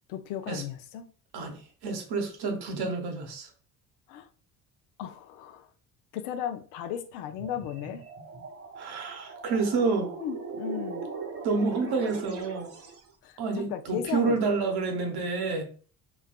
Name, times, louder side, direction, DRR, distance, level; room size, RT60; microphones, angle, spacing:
voice 1, 0.1-1.1 4.1-4.3 5.0-5.7 6.1-8.1 10.2-11.1 13.2-14.4, left 10 dB, 75° left, 0.5 m, -35 dB
voice 2, 1.3-3.5 8.8-10.1 11.4-12.7 13.4-15.6, right 4 dB, 55° right, 1.0 m, -29 dB
sound 1, 7.3-13.1, right 5 dB, 30° right, 0.7 m, -40 dB
3.3 x 2.2 x 2.2 m
hypercardioid pair, 65°, 48 cm